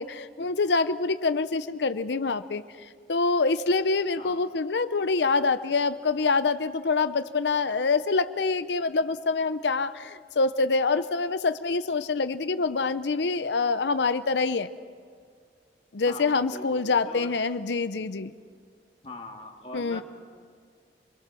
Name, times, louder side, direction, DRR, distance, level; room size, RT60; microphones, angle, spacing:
voice 1, 0.0-14.7 15.9-18.3 19.7-20.0, left 4 dB, 75° left, 12 dB, 0.7 m, -26 dB
voice 2, 16.1-17.3 19.0-20.0, left 2 dB, 35° left, 1 dB, 2.1 m, -41 dB
27.5 x 21.5 x 6.2 m, 2.1 s
head